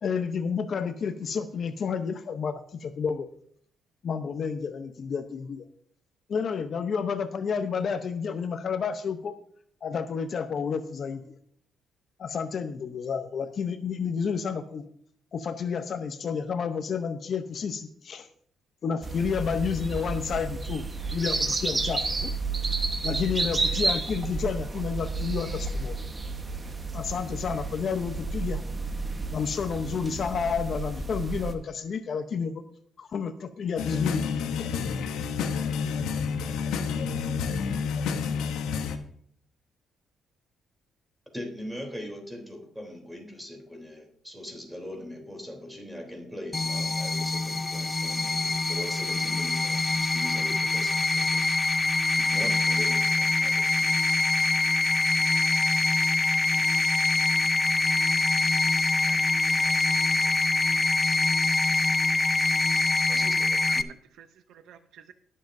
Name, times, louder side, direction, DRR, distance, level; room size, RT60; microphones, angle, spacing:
voice 1, 0.0-3.3 4.0-5.7 6.3-9.3 9.8-11.2 12.2-14.8 15.3-18.3 18.8-20.9 21.1-22.3 23.0-26.0 26.9-28.6 29.3-32.6 33.0-34.3 34.6-34.7, left 6 dB, 55° left, 9 dB, 0.8 m, -30 dB
sound 1, 19.0-31.5, right 3 dB, 25° right, 1.2 m, -31 dB
sound 2, 33.8-39.0, left 6 dB, 85° left, 0.9 m, -29 dB
voice 2, 41.3-51.4 52.2-53.9 63.1-63.8, left 1 dB, 5° right, 2 dB, 3.3 m, -41 dB
sound 3, 46.5-63.8, left 3 dB, 20° left, 0.5 m, -24 dB
voice 3, 58.7-59.3 59.6-59.7 60.2-60.3 63.7-65.1, right 9 dB, 75° right, 11 dB, 0.6 m, -51 dB
20.0 x 7.5 x 2.7 m, 0.63 s
cardioid pair, 90°, 0 cm